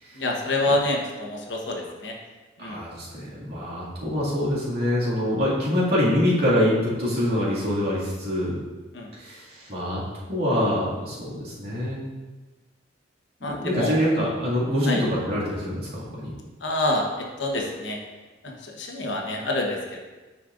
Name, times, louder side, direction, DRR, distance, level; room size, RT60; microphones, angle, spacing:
voice 1, 0.1-2.1 2.6-2.8 8.9-9.1 13.4-14.1 14.9-15.0 16.6-18.0 18.4-20.0, left 1 dB, 70° left, 0 dB, 1.1 m, -27 dB
voice 2, 2.6-8.6 9.1-10.0 10.3-12.0 13.4-16.3, equal, 60° right, -8 dB, 2.2 m, -25 dB
9.6 x 5.0 x 2.6 m, 1.2 s
head